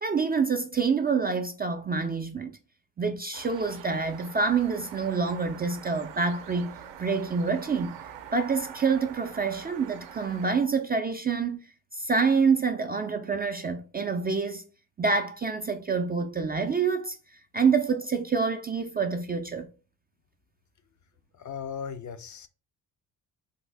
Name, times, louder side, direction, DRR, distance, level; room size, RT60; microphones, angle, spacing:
voice 1, 0.0-2.6 3.0-8.0 8.3-11.6 11.9-14.6 15.0-17.2 17.5-19.7, right 5 dB, 25° right, 0.3 m, -27 dB
sound 1, 3.3-10.6, right 9 dB, 70° right, 0.6 m, -45 dB
voice 2, 21.3-22.5, left 7 dB, 45° left, 0.5 m, -37 dB
3.5 x 2.0 x 3.3 m
supercardioid pair, 70°, 44 cm